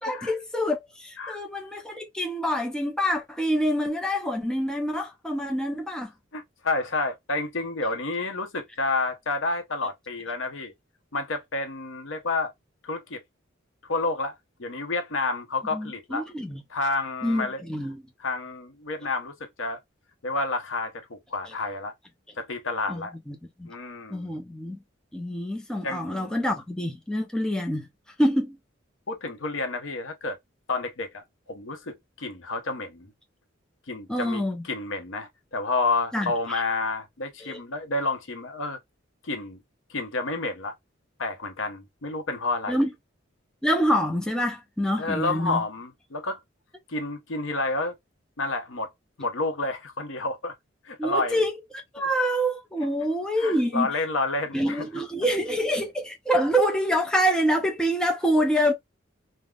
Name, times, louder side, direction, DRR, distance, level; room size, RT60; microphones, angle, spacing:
voice 1, 0.0-6.1 15.7-16.6 17.2-18.0 22.9-23.7 24.1-24.8 25.1-27.9 28.2-28.6 34.1-34.6 36.1-36.6 37.4-37.6 42.7-42.9 43.6-45.6 51.0-51.5 51.9-53.9 54.5-58.7, equal, 5° left, 0.5 m, -26 dB
voice 2, 6.3-10.7 11.1-12.5 12.8-13.2 13.8-14.3 14.6-16.3 16.7-17.6 18.2-19.8 20.2-21.9 22.4-23.1 23.6-24.3 25.8-26.4 29.1-30.4 30.7-33.1 33.9-38.8 39.2-39.6 39.9-40.8 41.2-42.8 45.0-46.4 46.9-48.0 48.4-48.9 49.2-50.5 50.8-51.5 52.0-52.1 53.4-54.9, left 3 dB, 80° left, 0.8 m, -30 dB
3.5 x 2.1 x 2.3 m
head